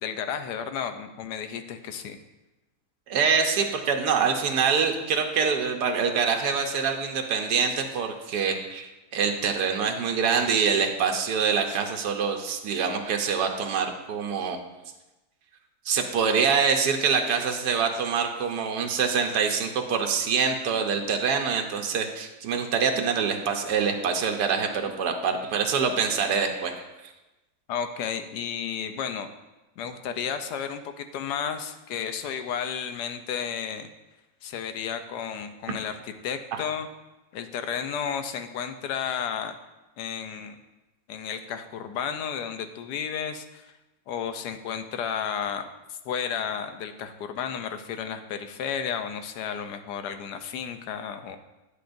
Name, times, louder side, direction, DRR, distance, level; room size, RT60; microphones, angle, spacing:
voice 1, 0.0-2.2 27.7-29.3 29.8-33.9 34.4-36.9 37.3-39.6 40.0-40.6 41.1-43.7 44.1-51.4, left 7 dB, 90° left, 8 dB, 1.2 m, -32 dB
voice 2, 3.1-14.6 15.9-26.8 36.5-36.6, right 6 dB, 85° right, 3 dB, 1.4 m, -25 dB
10.0 x 8.4 x 2.6 m, 1.1 s
omnidirectional pair, 1.7 m